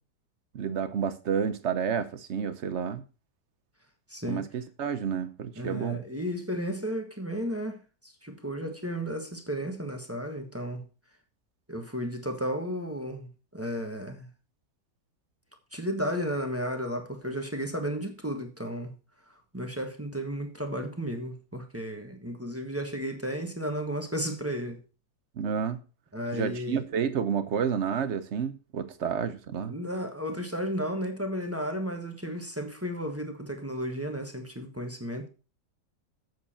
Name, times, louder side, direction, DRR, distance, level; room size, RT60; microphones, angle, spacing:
voice 1, 0.5-3.0 4.3-6.0 25.4-25.8 26.3-29.7, right 7 dB, 60° right, 0.8 m, -30 dB
voice 2, 4.1-4.4 5.6-10.8 11.7-14.3 15.7-18.9 19.5-24.8 26.1-26.8 29.6-35.3, equal, 10° right, 1.0 m, -33 dB
7.9 x 7.1 x 4.3 m
omnidirectional pair, 1.9 m